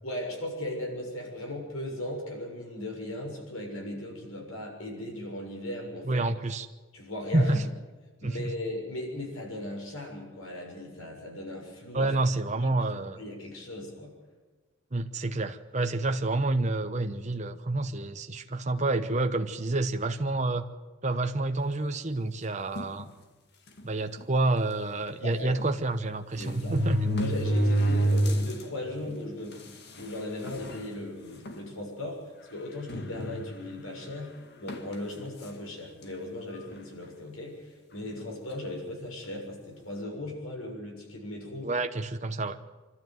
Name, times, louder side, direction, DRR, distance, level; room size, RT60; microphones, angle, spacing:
voice 1, 0.0-6.2 6.9-7.6 8.2-12.1 12.5-12.7 13.0-14.1 25.1-25.5 26.4-26.8 27.2-29.6 30.0-32.2 32.5-34.3 34.6-41.7, left 1 dB, 85° left, 1 dB, 6.7 m, -37 dB
voice 2, 6.1-6.7 7.3-7.6 8.2-8.4 11.9-13.2 14.9-20.7 21.0-23.1 23.8-27.0 41.6-42.6, right 2 dB, 35° right, 6 dB, 1.0 m, -28 dB
sound 1, 22.8-23.0 23.8-23.9 24.2-24.3 25.6-25.7 26.4-28.6 29.1-29.2 30.0-30.1 30.5-30.8 31.4-31.6 32.9-33.7 34.7-34.9, right 1 dB, 50° left, 2.0 m, -27 dB
25.5 x 13.0 x 9.4 m, 1.3 s
head